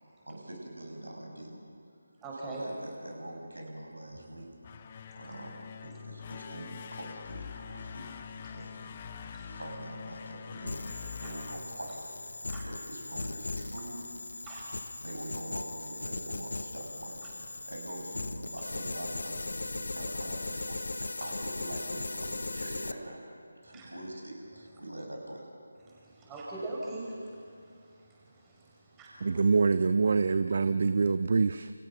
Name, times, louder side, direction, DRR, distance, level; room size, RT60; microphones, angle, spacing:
voice 1, 0.2-1.6 2.3-4.5 5.2-8.9 9.3-12.2 12.6-14.2 15.0-17.3 17.7-20.9 21.2-23.3 23.6-25.5, right 1 dB, 70° right, 1 dB, 7.0 m, -43 dB
voice 2, 2.2-2.6 9.3-9.5 12.5-12.6 14.5-14.7 23.7-23.9 26.0-27.2 29.0-29.1, right 2 dB, 10° right, -5 dB, 6.4 m, -39 dB
sound 1, 4.5-12.5, left 7 dB, 25° left, 1.1 m, -45 dB
sound 2, 10.7-22.9, left 2 dB, 55° left, 1.3 m, -38 dB
voice 3, 29.2-31.7, right 4 dB, 45° right, 12 dB, 0.7 m, -25 dB
29.5 x 29.5 x 6.0 m, 2.5 s
figure-of-eight pair, 155°, 0 cm